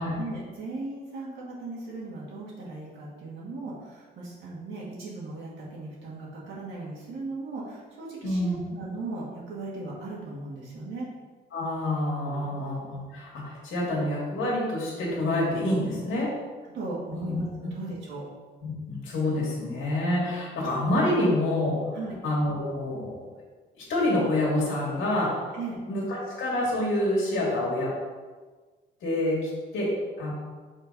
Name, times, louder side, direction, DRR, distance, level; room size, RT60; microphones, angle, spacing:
voice 1, 0.0-11.1 16.7-18.2 21.9-22.2 25.5-25.8, right 2 dB, 75° right, -6 dB, 1.9 m, -37 dB
voice 2, 8.2-8.6 11.5-16.3 17.1-17.3 18.6-22.0 22.2-23.3 23.8-25.6 25.9-26.0 26.4-28.0 29.0-30.3, left 1 dB, 80° left, -4 dB, 2.0 m, -27 dB
5.4 x 3.8 x 5.4 m, 1.4 s
cardioid pair, 90°, 20 cm